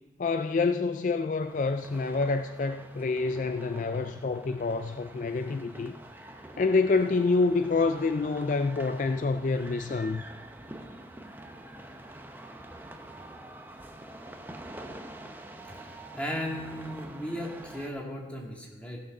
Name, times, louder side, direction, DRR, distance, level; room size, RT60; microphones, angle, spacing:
voice 1, 0.2-6.0 6.6-10.2, left 3 dB, 45° left, 0.3 m, -27 dB
sound 1, 1.4-17.9, right 1 dB, 10° right, 0.8 m, -46 dB
voice 2, 15.7-19.0, equal, 5° left, 1.8 m, -36 dB
15.5 x 6.5 x 5.9 m
head